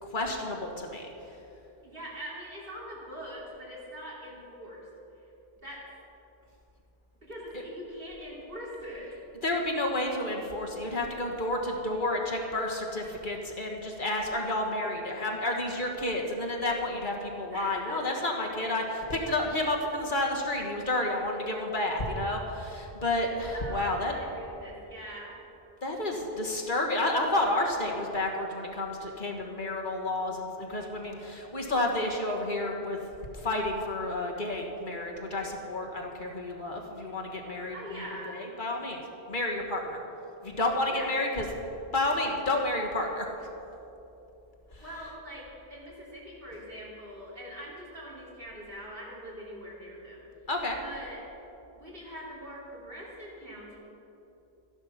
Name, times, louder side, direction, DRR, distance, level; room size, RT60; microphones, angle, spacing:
voice 1, 0.0-1.1 9.4-24.1 25.8-33.0 33.3-38.0 38.3-39.0 39.3-40.0 40.4-41.4 41.9-43.3 44.8-44.9 50.5-50.8, left 1 dB, 50° left, 0 dB, 1.6 m, -30 dB
voice 2, 1.8-4.9 5.6-5.8 7.1-9.1 14.3-15.0 17.5-18.2 23.5-25.4 37.7-38.4 40.9-41.2 44.8-45.4 45.7-50.2 50.8-51.2 51.7-53.8, equal, 60° right, -6 dB, 3.6 m, -43 dB
13.5 x 11.0 x 5.8 m, 3.0 s
omnidirectional pair, 1.1 m